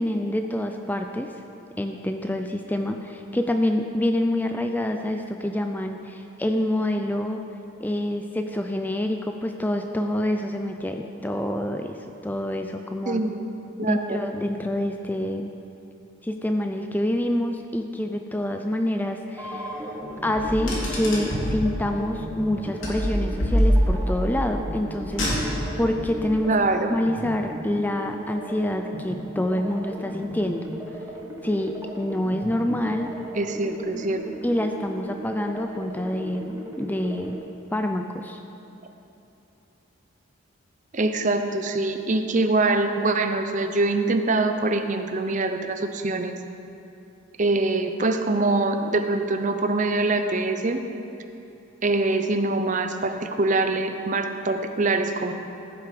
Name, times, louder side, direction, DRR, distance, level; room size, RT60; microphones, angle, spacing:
voice 1, 0.0-1.3 1.8-7.4 7.8-13.2 13.8-15.5 16.2-19.9 20.2-25.3 25.8-26.5 26.9-30.7 31.4-33.2 34.4-37.4 37.7-38.4, left 1 dB, 10° left, 5 dB, 0.3 m, -27 dB
voice 2, 13.1-13.5 13.8-14.2 26.4-26.9 33.4-34.2 40.9-46.3 47.4-50.8 51.8-55.3, right 2 dB, 35° right, 7 dB, 0.6 m, -24 dB
sound 1, 19.4-37.4, equal, 15° right, 1.2 m, -37 dB
Car, 20.4-21.6 22.8-24.1 25.0-25.8, equal, 70° left, 2.9 m, -24 dB
15.0 x 8.1 x 5.2 m, 2.9 s
head